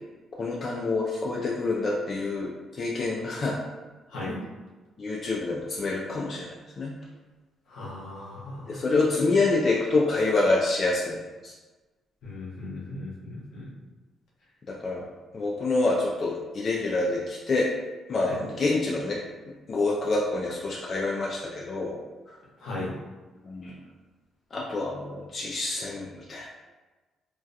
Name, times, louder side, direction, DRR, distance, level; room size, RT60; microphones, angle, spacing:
voice 1, 0.4-3.6 5.0-7.0 8.7-11.5 14.7-15.1 15.3-17.7 18.1-19.2 19.7-22.0 22.3-22.4 23.4-23.8 24.5-26.5, left 3 dB, 45° left, -3 dB, 0.3 m, -27 dB
voice 2, 7.7-8.8 12.2-13.6 18.3-18.4 22.6-22.9, left 2 dB, 80° left, -5 dB, 0.8 m, -37 dB
2.3 x 2.2 x 2.6 m, 1.2 s
cardioid pair, 90°, 0 cm